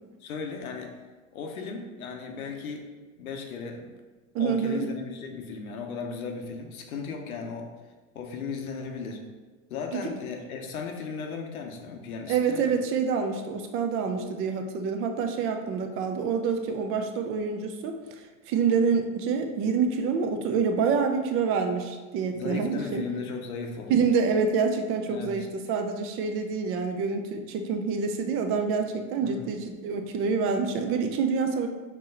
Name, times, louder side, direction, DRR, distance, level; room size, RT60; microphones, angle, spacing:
voice 1, 0.2-1.0 1.3-2.9 3.2-3.9 4.4-7.7 8.1-9.2 9.7-12.7 22.3-23.9 25.1-25.5 29.2-29.5, left 5 dB, 85° left, 3 dB, 0.9 m, -36 dB
voice 2, 4.3-4.9 9.9-10.1 12.3-18.0 18.5-23.0 23.9-31.7, right 5 dB, 35° right, 5 dB, 0.4 m, -27 dB
4.6 x 3.0 x 3.7 m, 1.3 s
hypercardioid pair, 115°, 42 cm